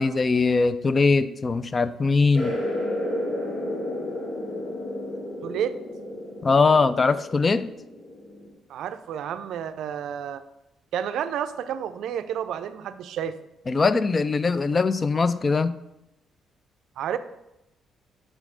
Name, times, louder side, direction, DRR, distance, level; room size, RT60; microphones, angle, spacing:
voice 1, 0.0-2.6 6.4-7.7 13.7-15.8, left 4 dB, 35° left, 14 dB, 0.3 m, -21 dB
sound 1, 2.3-8.5, left 1 dB, 80° left, 1.4 m, -32 dB
voice 2, 5.4-5.7 8.7-10.4 10.9-13.4 17.0-17.2, right 9 dB, 80° right, 11 dB, 0.4 m, -30 dB
6.2 x 3.2 x 5.1 m, 0.88 s
cardioid pair, 90°, 0 cm